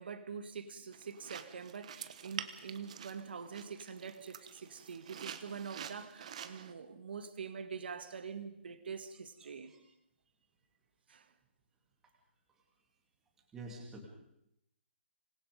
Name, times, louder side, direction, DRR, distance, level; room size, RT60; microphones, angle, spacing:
voice 1, 0.0-9.7 11.1-11.3, right 6 dB, 55° right, 2.2 m, -45 dB
sound 1, 0.9-6.7, right 8 dB, 35° right, 1.2 m, -48 dB
voice 2, 13.5-14.1, right 2 dB, 5° right, 2.5 m, -46 dB
25.5 x 21.0 x 5.1 m
hypercardioid pair, 180°, 7 cm